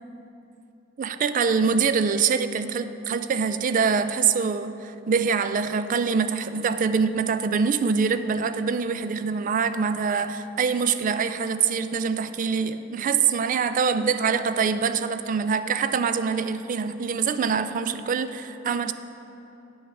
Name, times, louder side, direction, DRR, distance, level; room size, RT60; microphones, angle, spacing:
voice 1, 1.0-18.9, right 5 dB, 45° right, 11 dB, 0.3 m, -24 dB
8.9 x 6.3 x 5.7 m, 3.0 s
head